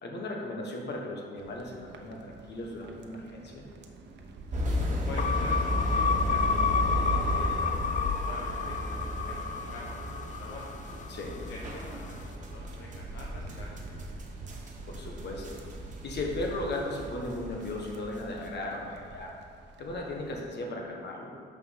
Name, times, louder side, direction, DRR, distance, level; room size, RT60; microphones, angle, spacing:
voice 1, 0.0-3.6 11.1-11.4 14.8-15.6 16.0-19.3 19.8-21.3, left 2 dB, 60° left, 0 dB, 1.5 m, -36 dB
sound 1, 1.3-20.5, right 2 dB, 60° right, 0.8 m, -46 dB
voice 2, 4.5-10.7 11.4-14.2, left 2 dB, 75° left, -3 dB, 1.0 m, -46 dB
sound 2, 4.5-18.4, equal, 40° right, 1.3 m, -34 dB
sound 3, 5.2-11.5, left 6 dB, 40° left, 0.4 m, -30 dB
6.3 x 5.5 x 5.9 m, 2.2 s
cardioid pair, 90°, 20 cm